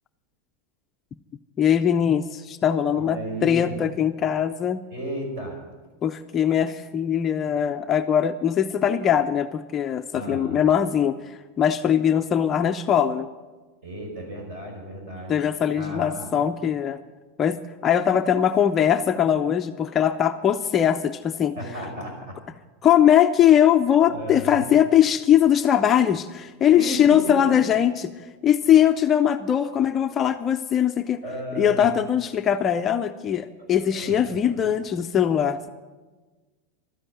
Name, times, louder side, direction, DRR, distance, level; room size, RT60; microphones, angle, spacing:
voice 1, 1.6-4.8 6.0-13.3 15.3-17.0 17.4-21.6 22.8-28.1 28.4-31.2 31.6-35.7, left 9 dB, 20° left, 7 dB, 0.4 m, -21 dB
voice 2, 3.0-3.8 4.9-5.6 10.1-10.6 13.8-15.3 15.7-16.3 21.6-22.4 24.0-24.6 26.7-27.5 31.2-31.9 33.6-34.6, right 1 dB, 45° right, 2 dB, 5.1 m, -34 dB
12.5 x 10.0 x 9.1 m, 1.3 s
supercardioid pair, 175°, 0 cm